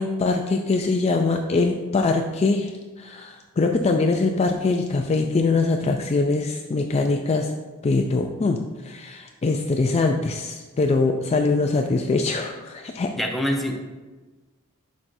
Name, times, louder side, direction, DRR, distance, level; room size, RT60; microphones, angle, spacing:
voice 1, 0.0-7.5 7.8-13.1, left 3 dB, 30° left, 4 dB, 0.3 m, -23 dB
voice 2, 13.2-13.7, equal, ahead, 0 dB, 0.8 m, -24 dB
9.8 x 6.0 x 2.6 m, 1.3 s
head